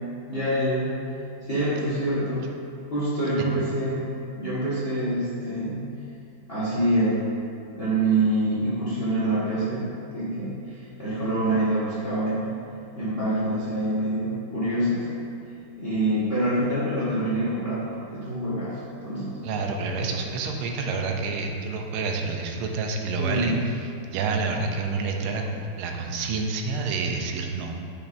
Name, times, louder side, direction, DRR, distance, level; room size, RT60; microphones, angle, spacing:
voice 1, 0.3-0.9 1.4-2.5 2.9-5.8 6.5-7.3 7.7-9.8 10.1-12.4 12.9-15.1 15.8-19.4 23.2-23.6, right 1 dB, 30° left, -10 dB, 1.3 m, -26 dB
voice 2, 19.4-23.8 24.1-27.7, right 4 dB, 80° right, 2 dB, 1.5 m, -28 dB
9.4 x 5.2 x 2.6 m, 2.4 s
omnidirectional pair, 2.4 m